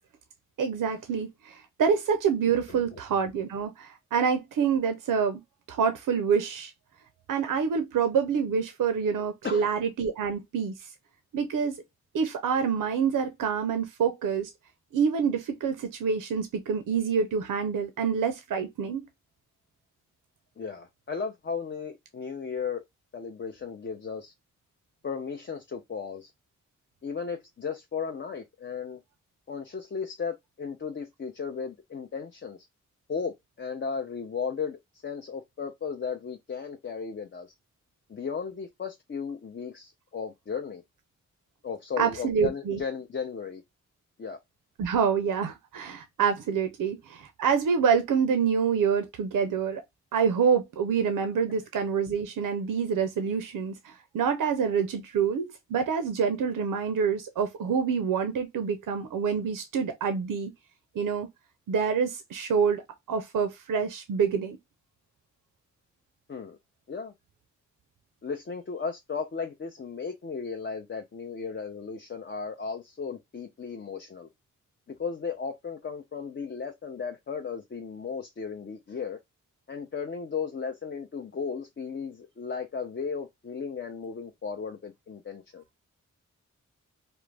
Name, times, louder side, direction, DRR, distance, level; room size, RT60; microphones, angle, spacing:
voice 1, 0.6-5.4 5.7-6.7 7.3-10.9 11.3-11.8 12.1-14.5 14.9-19.1 42.0-42.8 44.8-49.8 50.1-60.5 61.0-61.3 61.7-64.6, right 6 dB, 90° right, 0.5 m, -27 dB
voice 2, 20.6-22.8 23.1-24.3 25.0-26.3 27.0-29.0 29.5-32.7 33.1-37.5 38.1-40.8 41.6-43.6 44.2-44.4 66.3-66.6 66.9-67.1 68.2-74.3 74.9-79.2 79.7-85.6, left 5 dB, 35° left, 0.5 m, -35 dB
2.4 x 2.0 x 3.1 m
cardioid pair, 45°, 31 cm